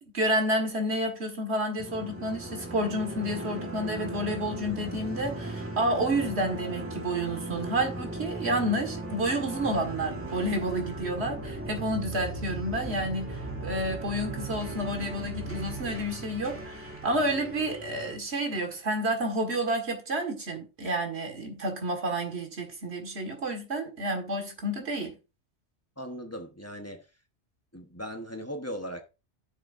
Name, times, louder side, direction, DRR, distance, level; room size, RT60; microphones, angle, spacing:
voice 1, 0.0-25.2, right 1 dB, 70° right, 2.1 m, -30 dB
sound 1, 1.8-18.2, right 2 dB, 10° right, 1.6 m, -37 dB
voice 2, 26.0-27.0 27.7-29.0, equal, 15° left, 1.0 m, -38 dB
10.5 x 6.6 x 2.6 m
omnidirectional pair, 1.2 m